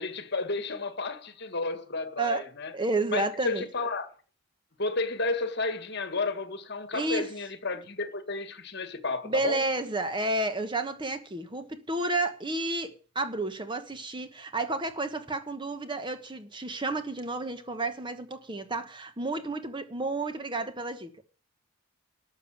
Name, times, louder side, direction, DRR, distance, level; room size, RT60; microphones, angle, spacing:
voice 1, 0.0-2.7 3.1-4.1 4.8-9.6, left 3 dB, 50° left, 1.8 m, -32 dB
voice 2, 2.7-3.6 6.9-7.3 9.2-21.1, right 2 dB, 20° right, 1.2 m, -31 dB
12.5 x 7.0 x 8.8 m
head